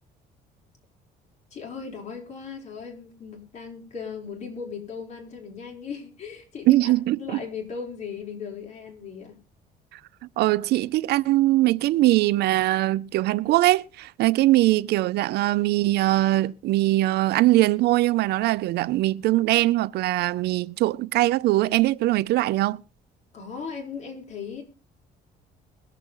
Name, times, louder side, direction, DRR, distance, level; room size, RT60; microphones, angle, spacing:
voice 1, 1.5-9.4 23.3-24.6, left 6 dB, 40° left, 5.2 m, -37 dB
voice 2, 6.7-7.4 9.9-10.0 10.4-22.8, right 17 dB, 75° right, 0.6 m, -21 dB
22.0 x 7.6 x 3.8 m
cardioid pair, 110°, 17 cm